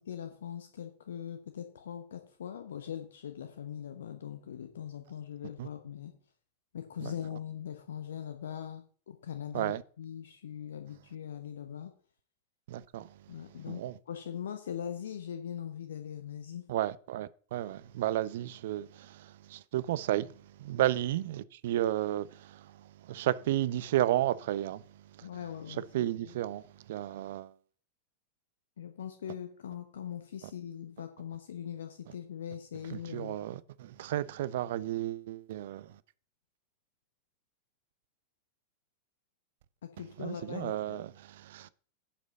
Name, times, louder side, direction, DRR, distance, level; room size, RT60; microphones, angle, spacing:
voice 1, 0.1-6.1 6.7-11.9 13.3-16.7 25.2-25.8 26.2-26.3 28.8-33.4 39.8-41.0, left 9 dB, 65° left, 1.1 m, -41 dB
voice 2, 12.7-13.1 13.7-13.9 16.7-20.3 20.6-25.3 25.8-27.5 32.9-36.0 40.2-41.7, right 13 dB, 55° right, 0.5 m, -33 dB
10.0 x 5.1 x 6.6 m
figure-of-eight pair, 90°, 0 cm